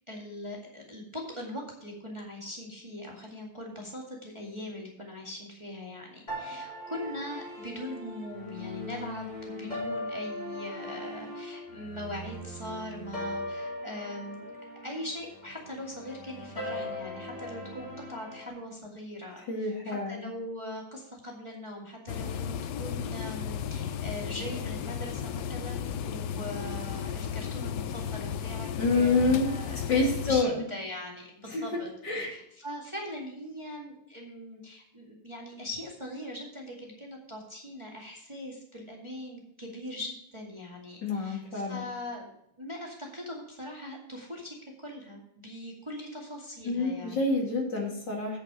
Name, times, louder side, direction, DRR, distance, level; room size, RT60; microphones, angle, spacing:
voice 1, 0.1-14.5 14.8-31.9 32.2-47.2, left 1 dB, 15° right, -1 dB, 2.0 m, -41 dB
sound 1, 6.3-18.5, left 1 dB, 20° left, 3.3 m, -39 dB
voice 2, 19.5-20.3 28.8-29.5 29.9-30.5 31.5-32.3 41.0-41.8 46.6-48.4, left 3 dB, 55° left, -1 dB, 3.0 m, -27 dB
sound 2, 22.1-30.4, left 8 dB, 75° left, 1.0 m, -34 dB
8.8 x 8.2 x 4.8 m, 0.77 s
omnidirectional pair, 2.4 m